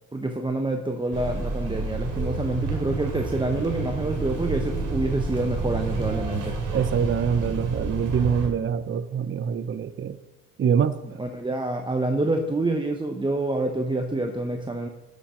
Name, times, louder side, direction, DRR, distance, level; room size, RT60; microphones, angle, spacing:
voice 1, 0.1-6.6 11.2-14.9, right 2 dB, 15° right, 0.9 m, -27 dB
sound 1, 1.1-8.5, right 3 dB, 85° right, 2.8 m, -29 dB
voice 2, 6.7-10.2 10.6-11.0, right 7 dB, 40° right, 0.7 m, -24 dB
11.0 x 7.4 x 5.2 m
cardioid pair, 90°, 30 cm